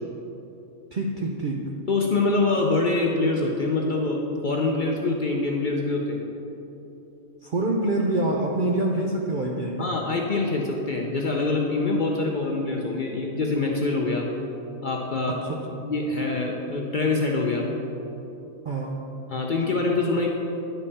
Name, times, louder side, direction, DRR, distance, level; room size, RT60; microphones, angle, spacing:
voice 1, 0.9-1.7 7.4-9.9 15.3-15.6 18.6-19.0, right 2 dB, 60° right, 0 dB, 0.5 m, -26 dB
voice 2, 1.9-6.2 9.8-14.3 14.8-15.4 15.8-17.7 19.3-20.3, left 3 dB, 50° left, 0 dB, 0.6 m, -25 dB
10.0 x 5.4 x 4.1 m, 3.0 s
omnidirectional pair, 1.4 m